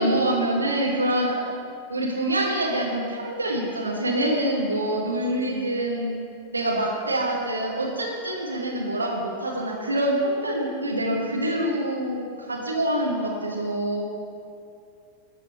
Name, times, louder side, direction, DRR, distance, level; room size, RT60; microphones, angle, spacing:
voice 1, 0.0-1.4 1.9-6.1 6.5-14.0, right 1 dB, 80° right, -3 dB, 2.5 m, -25 dB
14.0 x 5.7 x 7.9 m, 2.4 s
figure-of-eight pair, 90°, 0 cm